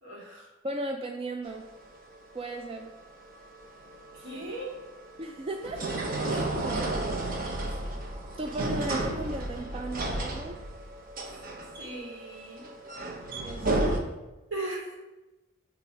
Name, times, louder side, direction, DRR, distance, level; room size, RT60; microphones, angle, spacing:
voice 1, 0.0-0.5 4.1-4.8 11.8-12.7 14.5-14.9, right 2 dB, 70° right, -4 dB, 2.4 m, -37 dB
voice 2, 0.6-1.7 2.3-2.9 5.2-5.9 6.2-7.1 7.7-7.8 8.4-10.6 13.4-14.0, right 2 dB, 30° right, 4 dB, 0.4 m, -36 dB
sound 1, 1.5-14.0, right 2 dB, 45° right, 0.8 m, -33 dB
6.9 x 3.5 x 5.8 m, 1.1 s
head